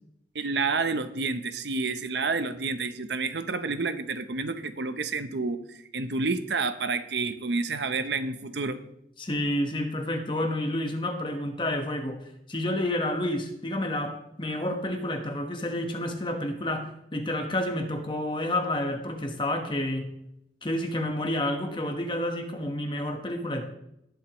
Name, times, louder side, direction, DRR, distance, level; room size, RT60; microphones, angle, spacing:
voice 1, 0.3-8.8, right 4 dB, 75° right, 11 dB, 0.8 m, -29 dB
voice 2, 9.2-20.1 20.6-23.7, left 1 dB, 25° left, 4 dB, 1.2 m, -29 dB
18.0 x 7.8 x 3.0 m, 0.79 s
head